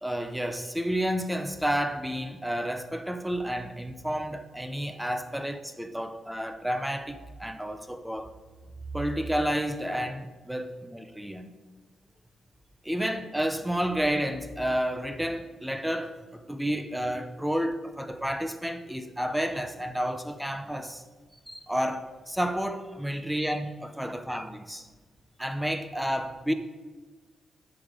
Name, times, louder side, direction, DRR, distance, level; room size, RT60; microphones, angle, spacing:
voice 1, 0.0-8.3 8.9-11.5 12.8-21.0 21.5-24.9 25.4-26.5, equal, 5° right, 0.7 m, -30 dB
12.0 x 7.0 x 5.1 m
cardioid pair, 135°, 0 cm